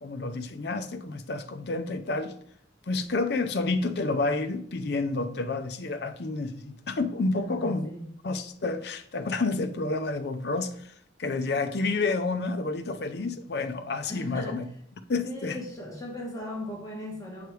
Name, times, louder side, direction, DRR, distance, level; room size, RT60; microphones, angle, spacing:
voice 1, 0.0-2.3 2.9-7.9 8.2-10.9 11.2-14.7 15.1-15.6, left 3 dB, 60° left, 0.5 m, -29 dB
voice 2, 7.3-8.1 14.1-14.6 15.2-17.5, left 1 dB, 20° left, 1.3 m, -38 dB
7.8 x 3.2 x 4.6 m
head